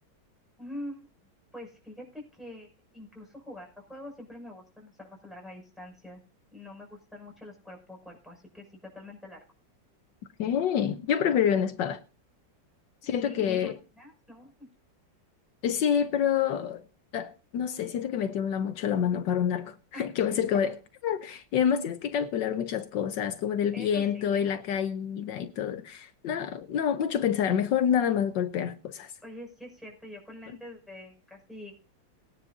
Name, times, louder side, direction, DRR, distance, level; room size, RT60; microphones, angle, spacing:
voice 1, 0.6-1.1 1.5-2.7 2.9-6.2 6.5-9.4 13.0-14.7 19.9-20.1 23.7-24.4 29.2-31.9, left 1 dB, ahead, 6.1 m, -45 dB
voice 2, 10.4-12.0 13.0-13.8 15.6-16.8 17.1-20.7 21.0-29.1, left 8 dB, 80° left, 1.5 m, -27 dB
20.5 x 9.9 x 2.7 m
omnidirectional pair, 2.0 m